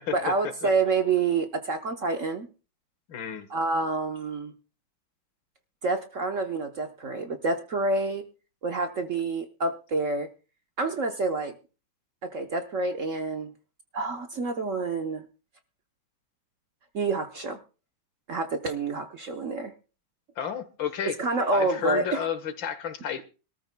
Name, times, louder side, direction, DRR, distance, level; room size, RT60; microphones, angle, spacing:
voice 1, 0.1-2.5 3.5-4.5 5.8-8.3 8.6-10.3 10.8-11.5 12.2-13.5 13.9-15.2 16.9-17.6 18.3-19.7 21.2-22.2, right 3 dB, 50° right, 1.0 m, -28 dB
voice 2, 3.1-3.5 20.4-21.2 21.5-23.2, left 8 dB, 75° left, 2.0 m, -31 dB
24.5 x 13.5 x 2.2 m
omnidirectional pair, 2.1 m